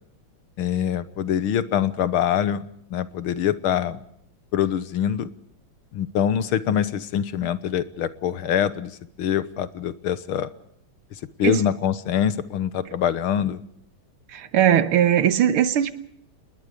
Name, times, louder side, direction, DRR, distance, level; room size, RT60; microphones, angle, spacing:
voice 1, 0.6-2.7 2.9-4.0 4.5-5.3 5.9-10.5 11.4-13.6, left 9 dB, 75° left, 15 dB, 1.9 m, -24 dB
voice 2, 14.3-15.9, right 10 dB, 75° right, 12 dB, 2.1 m, -19 dB
28.0 x 21.0 x 5.1 m, 0.70 s
omnidirectional pair, 2.4 m